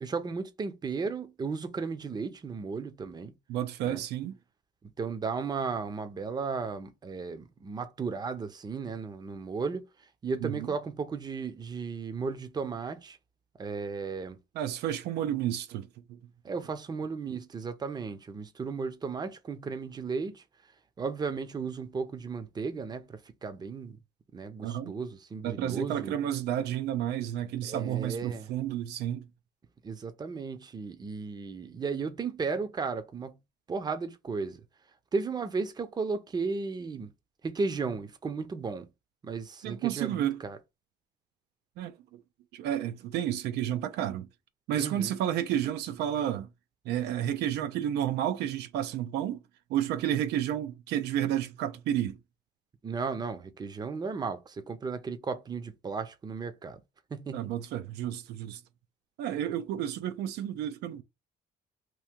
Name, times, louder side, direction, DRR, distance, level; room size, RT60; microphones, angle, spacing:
voice 1, 0.0-3.3 3.8-4.0 5.0-9.9 10.2-13.2 13.6-14.4 16.4-20.4 21.0-24.0 24.3-26.2 27.6-28.5 29.8-33.4 33.7-34.6 35.1-37.1 37.4-38.9 39.2-40.6 44.8-45.2 52.8-56.8 57.1-57.5, right 4 dB, 25° right, 0.6 m, -35 dB
voice 2, 3.5-4.4 10.4-10.7 14.5-16.2 24.6-24.9 25.4-29.3 39.6-40.4 41.8-41.9 42.5-44.3 44.7-46.5 46.9-49.4 49.7-52.2 57.3-58.6 59.2-61.0, right 11 dB, 80° right, 0.5 m, -31 dB
3.0 x 2.6 x 3.6 m
cardioid pair, 110°, 17 cm